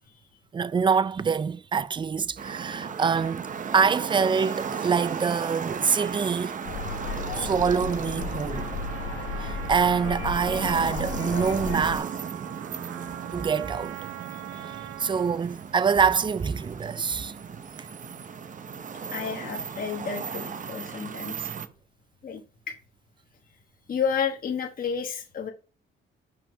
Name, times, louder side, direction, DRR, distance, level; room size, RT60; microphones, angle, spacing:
voice 1, 0.5-6.6 7.3-8.7 9.4-12.2 13.3-14.1 14.6-17.3 17.8-17.9, right 6 dB, 25° right, 0.4 m, -25 dB
sound 1, 2.4-21.7, right 6 dB, 40° right, 0.8 m, -36 dB
sound 2, 6.6-12.0, left 4 dB, 85° left, 1.5 m, -34 dB
Trumpet, 8.5-15.5, right 15 dB, 85° right, 0.5 m, -42 dB
voice 2, 14.3-14.7 19.1-21.5 22.2-22.8 23.9-25.5, left 6 dB, 45° left, 1.3 m, -31 dB
5.9 x 5.4 x 5.3 m
cardioid pair, 90°, 20 cm